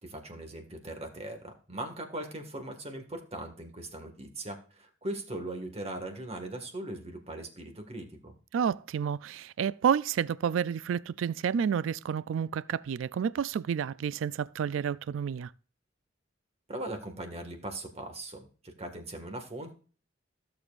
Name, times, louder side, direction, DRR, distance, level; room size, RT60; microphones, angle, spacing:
voice 1, 0.0-8.3 16.7-19.8, right 1 dB, 35° right, 1.7 m, -40 dB
voice 2, 8.5-15.5, right 7 dB, 90° right, 0.3 m, -30 dB
15.5 x 7.0 x 2.4 m
head